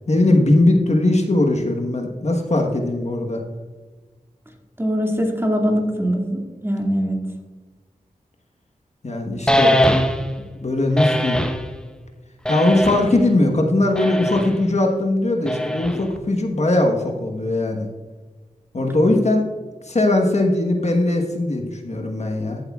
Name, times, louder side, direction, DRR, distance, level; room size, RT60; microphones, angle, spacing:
voice 1, 0.1-3.4 9.0-9.7 10.5-11.4 12.5-17.9 18.7-19.4 19.8-22.6, left 2 dB, 50° left, 2 dB, 1.2 m, -19 dB
voice 2, 4.8-7.2, equal, 15° right, 1 dB, 2.1 m, -22 dB
sound 1, 9.5-10.4 11.0-11.6 12.4-13.2 13.9-14.6 15.5-16.2, equal, 5° left, 0.9 m, -21 dB
14.5 x 7.9 x 2.4 m, 1.3 s
wide cardioid pair, 55°, 15 cm